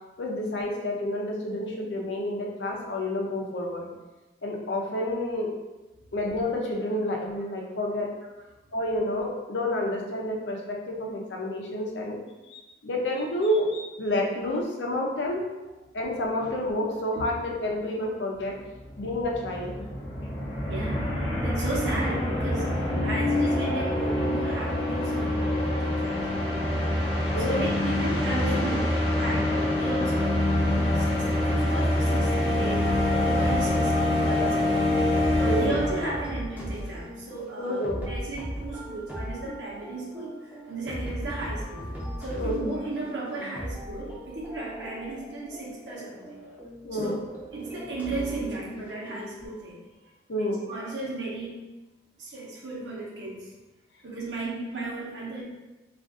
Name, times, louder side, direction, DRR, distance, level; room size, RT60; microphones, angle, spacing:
voice 1, 0.2-3.9 4.4-5.5 6.1-8.1 8.7-12.2 12.5-15.4 15.9-18.6 19.0-19.8 27.3-27.7 35.4-35.8 37.6-38.1 42.4-42.7 46.8-47.2 50.3-50.6, left 1 dB, 80° left, -1 dB, 0.6 m, -29 dB
sound 1, 18.5-18.6 18.8-36.2, left 1 dB, 30° left, 0.6 m, -25 dB
voice 2, 20.6-32.9 33.2-35.0 35.4-41.9 42.2-46.4 46.9-47.2 47.5-49.8 50.3-51.6 52.2-53.5 54.0-55.4, right 2 dB, 75° right, -4 dB, 0.9 m, -35 dB
sound 2, 32.8-49.5, equal, 10° right, 0.6 m, -38 dB
2.5 x 2.4 x 3.5 m, 1.1 s
head